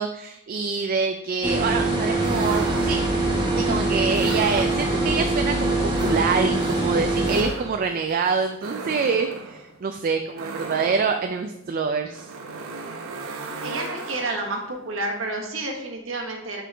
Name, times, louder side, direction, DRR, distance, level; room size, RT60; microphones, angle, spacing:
voice 1, 0.0-3.0 3.6-12.3, right 5 dB, 45° right, 6 dB, 0.3 m, -26 dB
sound 1, 1.4-7.4, right 2 dB, 20° right, 1.2 m, -23 dB
sound 2, 2.2-3.3 4.1-5.2 5.9-14.6, right 3 dB, 90° right, 0.7 m, -36 dB
voice 2, 13.6-16.6, right 2 dB, 70° right, 1 dB, 1.2 m, -30 dB
6.1 x 4.6 x 3.4 m, 0.83 s
head